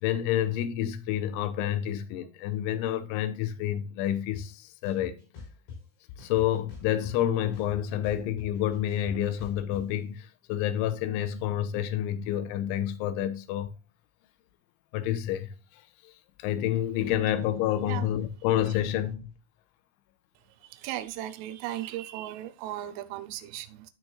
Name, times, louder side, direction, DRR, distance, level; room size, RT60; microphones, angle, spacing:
voice 1, 0.0-5.1 6.2-13.7 14.9-15.5 16.0-16.1 16.4-19.3, left 11 dB, 85° left, 3.1 m, -29 dB
sound 1, 4.3-4.4 4.8-5.8 6.2-7.3 7.5-9.8, left 5 dB, 60° left, 6.0 m, -43 dB
voice 2, 20.7-23.8, right 13 dB, 85° right, 3.2 m, -36 dB
12.0 x 6.2 x 2.3 m
omnidirectional pair, 5.6 m